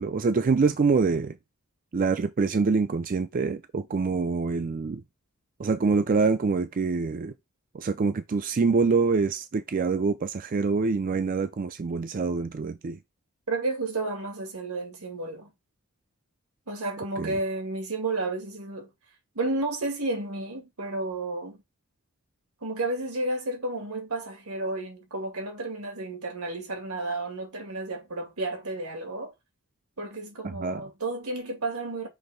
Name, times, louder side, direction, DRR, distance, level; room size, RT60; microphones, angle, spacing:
voice 1, 0.0-1.3 1.9-5.0 5.6-7.3 7.7-13.0 17.2-17.3 30.6-30.8, right 4 dB, 40° right, 0.4 m, -25 dB
voice 2, 13.5-15.5 16.7-18.9 19.4-21.6 22.6-29.3 30.0-32.1, right 2 dB, 85° right, 2.0 m, -32 dB
6.1 x 3.1 x 5.0 m
head